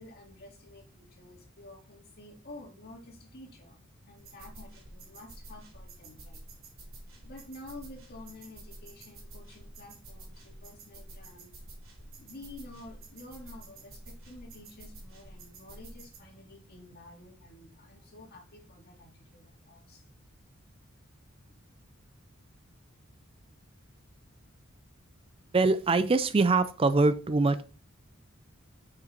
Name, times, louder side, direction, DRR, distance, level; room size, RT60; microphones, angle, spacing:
voice 1, 0.0-3.8 4.1-6.4 7.2-11.5 12.2-20.1 21.5-21.6 24.1-24.2, left 2 dB, 50° left, 1 dB, 2.1 m, -50 dB
sound 1, 4.2-16.2, right 2 dB, 75° right, 2.7 m, -49 dB
voice 2, 25.5-27.6, right 3 dB, 25° right, 13 dB, 0.4 m, -23 dB
6.5 x 5.4 x 4.4 m, 0.38 s
head